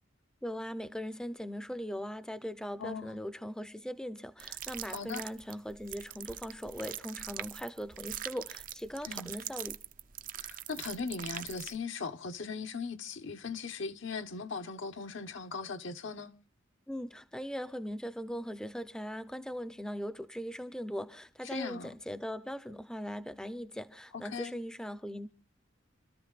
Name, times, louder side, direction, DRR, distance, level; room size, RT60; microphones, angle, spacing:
voice 1, 0.4-9.8 16.9-25.3, equal, 5° left, 0.6 m, -40 dB
voice 2, 2.8-3.2 4.9-5.2 9.1-9.3 10.3-16.3 21.5-21.9 24.1-24.5, left 4 dB, 70° left, 1.1 m, -39 dB
sound 1, 4.4-11.8, right 11 dB, 45° right, 0.6 m, -43 dB
29.0 x 13.5 x 2.4 m
head